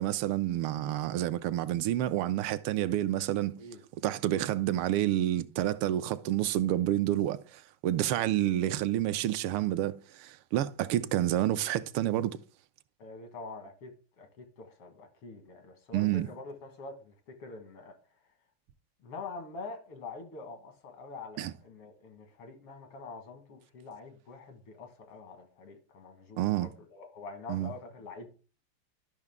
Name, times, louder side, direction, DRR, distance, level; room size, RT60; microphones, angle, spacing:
voice 1, 0.0-3.6 4.0-12.4 15.9-16.3 21.4-21.5 26.4-26.7 27.5-27.7, right 13 dB, 80° right, 1.5 m, -29 dB
voice 2, 13.0-13.9 14.2-18.0 19.0-28.3, left 3 dB, 90° left, 2.5 m, -45 dB
12.0 x 5.7 x 3.5 m
omnidirectional pair, 2.4 m